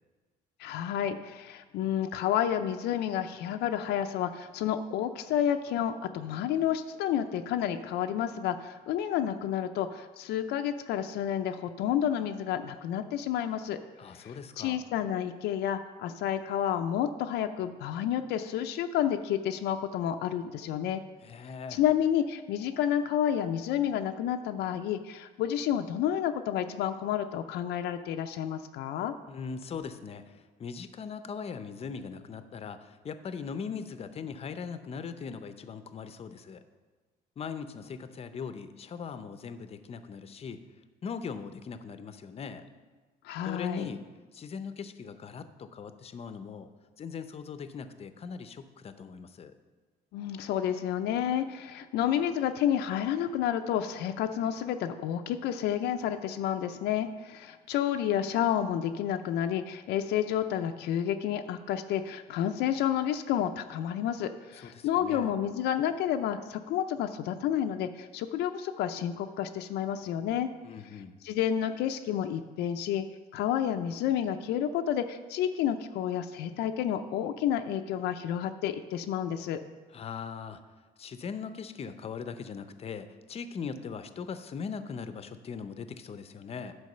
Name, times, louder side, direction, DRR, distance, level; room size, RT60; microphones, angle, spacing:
voice 1, 0.6-13.8 14.1-14.3 14.6-21.0 21.7-29.1 43.2-43.9 50.1-70.5 71.2-73.0 73.3-79.6, left 10 dB, 80° left, 7 dB, 0.5 m, -30 dB
voice 2, 14.0-14.8 21.2-21.8 29.3-36.6 37.4-40.6 41.0-42.6 43.4-44.0 44.3-46.7 47.0-49.5 64.6-65.3 70.6-71.2 79.9-80.6 81.0-86.8, left 6 dB, 35° left, 10 dB, 0.6 m, -40 dB
9.5 x 4.7 x 6.6 m, 1.4 s
cardioid pair, 110°, 17 cm